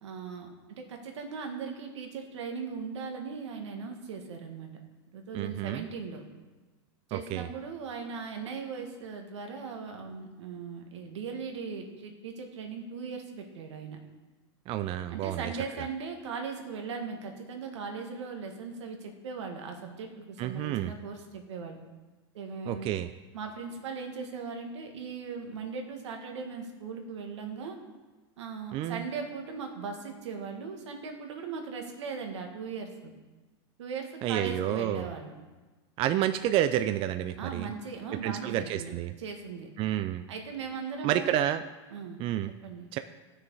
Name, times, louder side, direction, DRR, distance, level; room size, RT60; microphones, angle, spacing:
voice 1, 0.0-4.7 5.1-6.2 7.1-14.0 15.1-21.8 22.3-22.9 23.3-27.8 28.4-33.1 33.8-35.3 37.4-39.7 40.3-41.4 41.9-42.2 42.6-42.9, right 5 dB, 85° right, 3 dB, 1.7 m, -39 dB
voice 2, 5.3-5.8 7.1-7.5 14.7-15.4 20.4-20.9 22.7-23.1 28.7-29.0 34.2-35.1 36.0-37.7 38.2-39.1 39.8-40.2 41.0-41.6 42.2-42.5 42.9-43.0, right 12 dB, 40° right, 10 dB, 0.4 m, -29 dB
13.0 x 6.5 x 4.7 m, 1.3 s
supercardioid pair, 120°, 14 cm